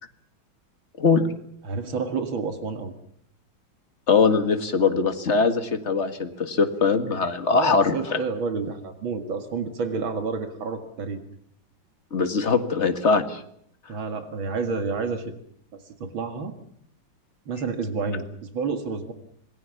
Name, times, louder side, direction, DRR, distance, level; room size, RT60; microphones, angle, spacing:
voice 1, 1.6-2.9 7.5-11.2 13.9-15.3 15.7-16.6 17.5-19.1, right 4 dB, 75° right, 7 dB, 2.7 m, -29 dB
voice 2, 4.1-8.2 12.1-13.4, left 4 dB, 35° left, 8 dB, 2.0 m, -21 dB
27.0 x 20.5 x 7.2 m, 0.69 s
omnidirectional pair, 2.2 m